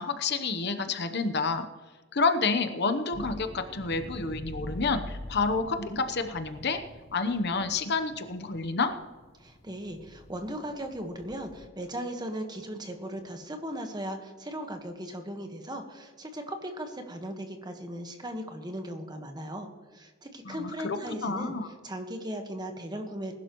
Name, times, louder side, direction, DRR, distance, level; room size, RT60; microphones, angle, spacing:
voice 1, 0.0-1.7 2.1-6.8 7.1-8.9 20.4-21.0 21.2-21.7, left 4 dB, 55° left, 8 dB, 0.9 m, -29 dB
sound 1, 3.1-11.7, left 1 dB, 30° left, 0.7 m, -45 dB
voice 2, 9.4-21.5 21.8-23.3, equal, 20° right, 5 dB, 1.4 m, -37 dB
20.0 x 11.5 x 3.1 m, 1.4 s
head